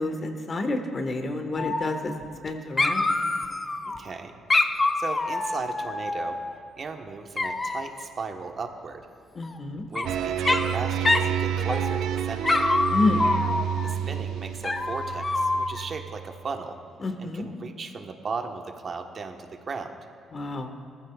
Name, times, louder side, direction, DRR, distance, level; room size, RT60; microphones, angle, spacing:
voice 1, 0.0-2.1 2.4-3.1 9.3-9.8 12.9-13.2 17.0-17.5 20.3-20.7, left 2 dB, 40° left, 5 dB, 1.5 m, -29 dB
Dog, 1.6-2.5 2.8-4.0 4.5-6.6 7.4-8.0 9.4-10.1 10.4-10.8 11.0-11.3 11.7-12.1 12.4-13.9 14.6-15.9, left 2 dB, 25° left, 0.7 m, -26 dB
voice 2, 3.9-4.3 5.0-6.4 6.8-9.0 9.9-12.6 13.8-16.8 17.2-20.0, right 4 dB, 45° right, 4 dB, 1.2 m, -36 dB
sound 1, 10.0-16.3, right 9 dB, 85° right, 0.6 m, -29 dB
20.0 x 15.0 x 2.4 m, 2.4 s
cardioid pair, 90°, 0 cm